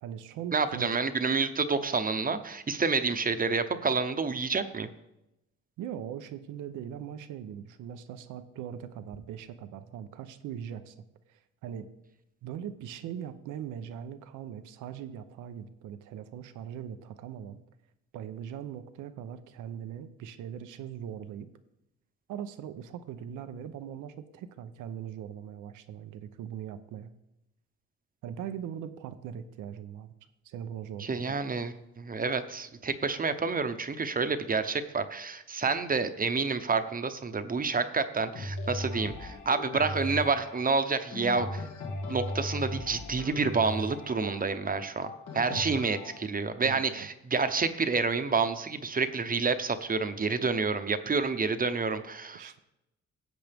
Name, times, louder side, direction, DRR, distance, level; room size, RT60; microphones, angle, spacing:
voice 1, 0.0-1.0 5.8-10.9 11.3-11.9 12.4-17.6 18.1-21.5 22.3-27.1 28.2-30.1 30.4-31.4 45.5-45.9 46.6-47.1 52.3-52.6, right 9 dB, 90° right, 11 dB, 0.8 m, -40 dB
voice 2, 0.5-4.9 31.0-41.6 42.1-52.6, right 4 dB, 30° right, 10 dB, 0.9 m, -29 dB
sound 1, 38.3-46.3, left 2 dB, 70° left, 1.6 m, -38 dB
16.5 x 7.8 x 3.5 m, 0.90 s
cardioid pair, 90°, 30 cm